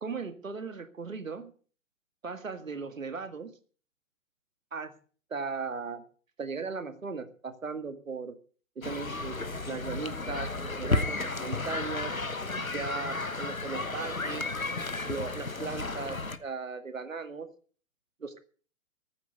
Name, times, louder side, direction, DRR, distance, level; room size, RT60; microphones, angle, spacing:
voice 1, 0.0-1.5 2.2-3.5 4.7-5.0 5.3-6.0 6.4-8.4 8.8-9.4 9.7-12.1 12.6-14.5 15.1-17.5 18.2-18.4, right 4 dB, 75° right, 10 dB, 2.1 m, -37 dB
sound 1, 8.8-16.4, left 3 dB, 90° left, 1.4 m, -33 dB
14.5 x 9.5 x 8.1 m, 0.42 s
figure-of-eight pair, 115°, 40 cm